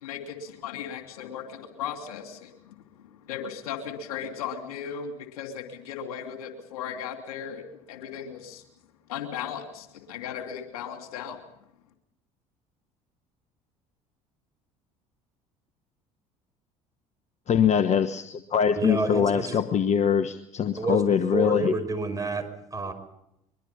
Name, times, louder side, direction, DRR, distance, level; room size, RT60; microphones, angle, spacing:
voice 1, 0.0-8.6 9.1-11.4, left 8 dB, 70° left, 6 dB, 3.0 m, -37 dB
voice 2, 17.5-21.7, left 7 dB, 35° left, 11 dB, 1.2 m, -23 dB
voice 3, 18.7-19.6 20.8-22.9, right 3 dB, 20° right, 6 dB, 5.2 m, -29 dB
23.0 x 23.0 x 5.6 m, 0.81 s
figure-of-eight pair, 60°, 19 cm